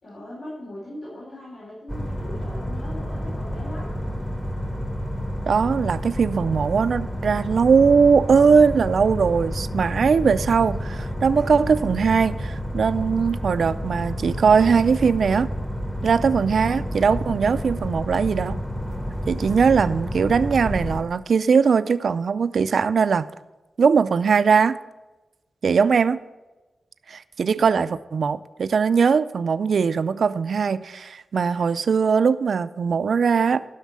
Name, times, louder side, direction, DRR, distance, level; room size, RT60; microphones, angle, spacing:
voice 1, 0.0-4.0, left 1 dB, 75° left, -7 dB, 4.5 m, -39 dB
sound 1, 1.9-21.0, equal, 10° left, 0.9 m, -30 dB
voice 2, 5.5-15.5 16.0-18.6 19.3-23.3 23.8-24.8 25.6-26.2 27.1-33.7, right 6 dB, 70° right, 14 dB, 0.4 m, -20 dB
11.5 x 6.4 x 7.4 m, 1.1 s
wide cardioid pair, 160°, 0 cm